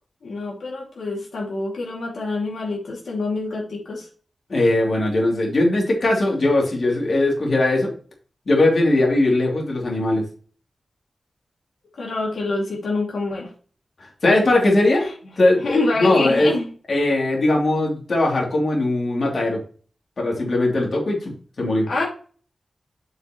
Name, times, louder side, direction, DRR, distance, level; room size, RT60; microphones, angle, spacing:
voice 1, 0.2-4.1 12.0-13.5 15.0-15.1 15.6-16.7 21.9-22.0, left 2 dB, 90° left, -3 dB, 2.5 m, -26 dB
voice 2, 4.5-7.9 8.5-10.2 14.2-15.0 15.4-16.5 16.9-19.6 20.2-21.9, left 2 dB, 55° left, -2 dB, 3.0 m, -19 dB
7.7 x 6.4 x 3.0 m, 0.41 s
wide cardioid pair, 140°, 0 cm